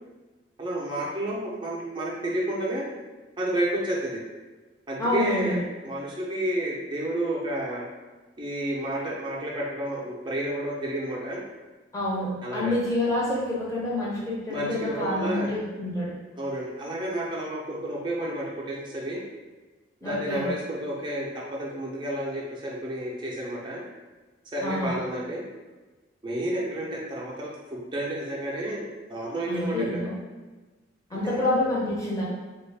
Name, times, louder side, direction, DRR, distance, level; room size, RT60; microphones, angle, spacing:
voice 1, 0.6-2.8 3.4-4.2 4.9-7.8 8.4-11.4 12.4-12.8 14.5-15.5 16.4-19.2 20.0-23.8 24.5-25.4 26.2-30.0 31.1-31.5, right 1 dB, 25° right, -4 dB, 0.6 m, -31 dB
voice 2, 5.0-5.6 11.9-16.1 20.0-20.5 24.6-25.0 29.5-30.2 31.1-32.2, left 1 dB, 15° left, -7 dB, 0.8 m, -27 dB
3.5 x 2.4 x 3.3 m, 1.2 s
head